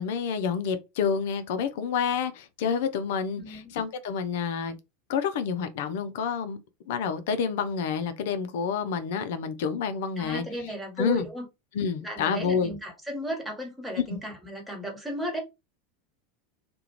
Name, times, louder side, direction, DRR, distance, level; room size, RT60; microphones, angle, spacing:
voice 1, 0.0-4.8 5.1-6.6 6.9-10.4 11.0-11.3 11.7-12.7 13.9-14.2, left 6 dB, 65° left, 0.4 m, -28 dB
voice 2, 3.4-3.7 10.2-11.4 12.0-15.4, equal, 5° right, 1.2 m, -35 dB
2.4 x 2.1 x 2.9 m
hypercardioid pair, 85°, 0 cm